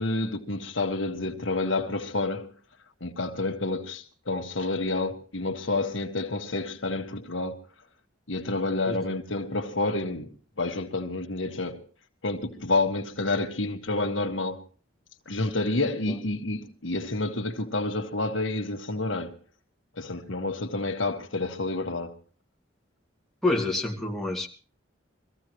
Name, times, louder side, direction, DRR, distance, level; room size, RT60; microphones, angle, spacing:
voice 1, 0.0-2.5 3.0-7.6 8.3-10.3 10.6-11.8 12.2-14.6 15.3-19.3 20.0-22.2, left 2 dB, 85° left, 1.7 m, -29 dB
voice 2, 23.4-24.5, left 2 dB, ahead, 2.1 m, -27 dB
24.0 x 15.0 x 3.1 m
head